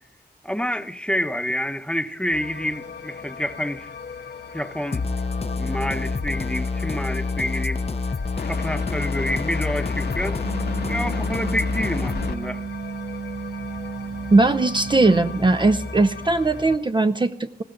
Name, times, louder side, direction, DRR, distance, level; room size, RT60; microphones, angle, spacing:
voice 1, 0.4-3.9 4.5-5.1 5.5-7.8 8.4-10.4 10.9-12.6, equal, 5° left, 0.9 m, -28 dB
sound 1, 2.3-16.8, left 4 dB, 80° left, 1.3 m, -36 dB
sound 2, 4.9-12.3, left 4 dB, 40° left, 0.7 m, -27 dB
sound 3, 10.4-15.5, right 6 dB, 70° right, 0.6 m, -34 dB
voice 2, 14.3-17.6, right 2 dB, 30° right, 0.6 m, -19 dB
19.5 x 15.5 x 3.9 m
wide cardioid pair, 70°, 16 cm